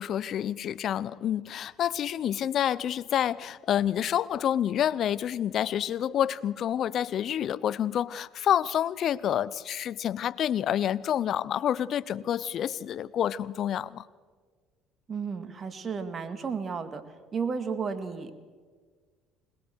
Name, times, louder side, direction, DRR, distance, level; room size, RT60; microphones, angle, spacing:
voice 1, 0.0-14.0, left 10 dB, 55° left, 19 dB, 0.7 m, -28 dB
voice 2, 15.1-17.0 17.3-18.3, right 5 dB, 40° right, 10 dB, 2.3 m, -33 dB
21.5 x 21.0 x 6.4 m, 1.5 s
hypercardioid pair, 70°, 0 cm